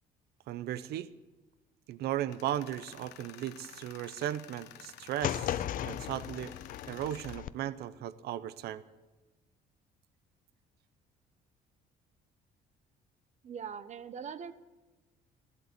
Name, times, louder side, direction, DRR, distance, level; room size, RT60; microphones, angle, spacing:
voice 1, 0.5-1.1 1.9-6.5 6.9-8.8, right 12 dB, 70° right, 16 dB, 0.7 m, -36 dB
Tools, 2.3-7.4, left 12 dB, 85° left, 1.1 m, -52 dB
sound 1, 5.2-7.5, left 11 dB, 55° left, 0.5 m, -36 dB
voice 2, 13.4-14.5, right 7 dB, 45° right, 13 dB, 1.0 m, -41 dB
14.0 x 12.0 x 8.2 m, 1.2 s
cardioid pair, 110°, 17 cm